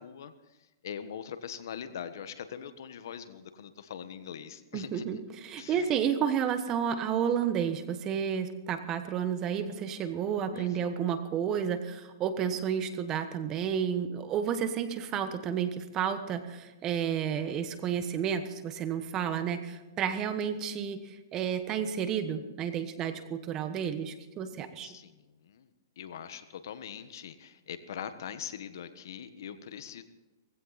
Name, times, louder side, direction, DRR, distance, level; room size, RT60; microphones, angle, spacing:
voice 1, 0.0-5.2 5.6-5.9 10.5-11.0 24.8-25.7 26.0-30.0, left 8 dB, 65° left, 11 dB, 1.4 m, -42 dB
voice 2, 4.7-24.9, right 8 dB, 25° right, 10 dB, 1.3 m, -31 dB
18.0 x 16.0 x 4.2 m, 1.1 s
hypercardioid pair, 145°, 2 cm